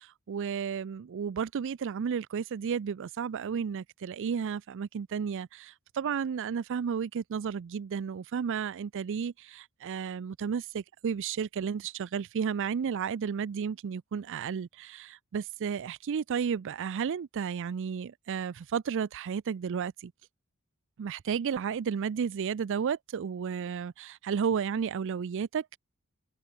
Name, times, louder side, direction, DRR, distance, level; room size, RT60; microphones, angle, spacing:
voice 1, 0.0-20.1 21.0-25.8, right 7 dB, 60° right, 0.4 m, -33 dB
head